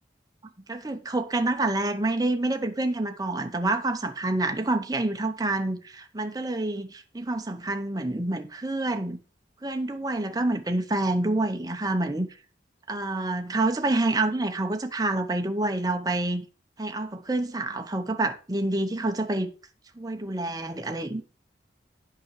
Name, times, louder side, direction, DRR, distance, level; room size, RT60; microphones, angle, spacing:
voice 1, 0.7-9.2 9.6-12.3 12.9-16.4 16.8-19.5 20.0-21.2, right 2 dB, 20° right, 0.7 m, -27 dB
8.3 x 5.8 x 5.2 m
head